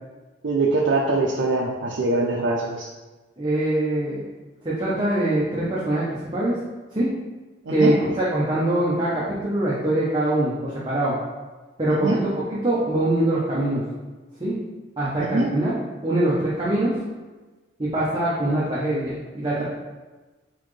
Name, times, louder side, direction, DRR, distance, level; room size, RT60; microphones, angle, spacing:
voice 1, 0.4-2.9 7.7-7.9 11.9-12.2 15.2-15.5, right 3 dB, 80° right, -2 dB, 0.5 m, -23 dB
voice 2, 3.4-4.2 4.6-6.6 6.9-7.1 7.7-11.1 11.8-12.2 12.5-13.8 14.4-14.5 15.0-16.9 17.8-19.6, right 1 dB, 25° right, -8 dB, 0.8 m, -23 dB
4.1 x 3.7 x 3.2 m, 1.2 s
head